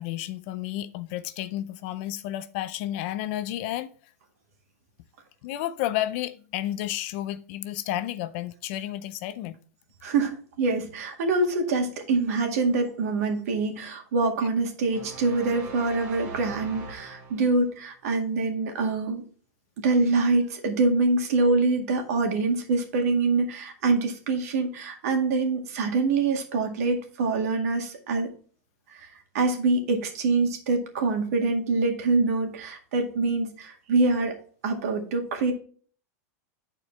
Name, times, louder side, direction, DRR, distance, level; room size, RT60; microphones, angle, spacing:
voice 1, 0.0-3.9 5.4-9.6, left 13 dB, 50° left, 0.5 m, -31 dB
voice 2, 10.0-19.2 19.8-28.3 28.9-29.1 29.3-34.4 34.6-35.5, right 3 dB, 70° right, 1.9 m, -25 dB
sound 1, 14.9-17.7, right 3 dB, 45° right, 2.7 m, -41 dB
8.7 x 4.5 x 4.3 m
supercardioid pair, 155°, 9 cm